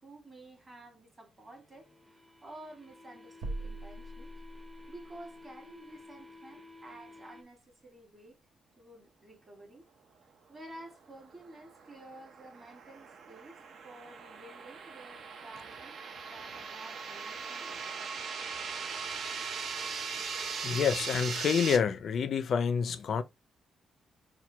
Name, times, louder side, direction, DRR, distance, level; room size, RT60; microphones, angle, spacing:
voice 1, 0.0-4.3 4.9-8.4 8.8-9.8 10.5-13.6 13.8-16.0 16.3-18.2, right 1 dB, 25° right, 1.8 m, -51 dB
sound 1, 1.4-7.4, left 2 dB, 10° right, 0.7 m, -53 dB
sound 2, 3.4-5.0, right 2 dB, 85° right, 1.4 m, -40 dB
sound 3, 11.3-21.8, right 5 dB, 55° right, 0.7 m, -39 dB
voice 2, 20.6-23.2, left 7 dB, 50° left, 0.5 m, -28 dB
4.3 x 2.2 x 4.4 m
wide cardioid pair, 170°, 0 cm